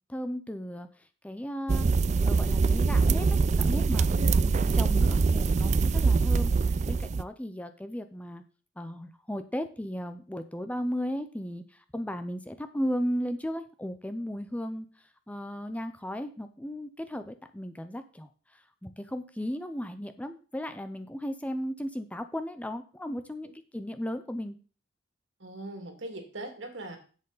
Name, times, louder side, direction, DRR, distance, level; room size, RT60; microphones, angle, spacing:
voice 1, 0.1-0.9 1.2-1.9 2.2-3.4 3.6-4.4 4.7-8.4 8.8-14.9 15.3-24.6, equal, 5° left, 9 dB, 0.6 m, -35 dB
sound 1, 1.7-7.2, right 4 dB, 35° right, 0.3 m, -24 dB
voice 2, 4.1-4.4 25.4-27.0, right 2 dB, 75° right, 4 dB, 2.3 m, -40 dB
10.5 x 7.8 x 4.1 m, 0.39 s
head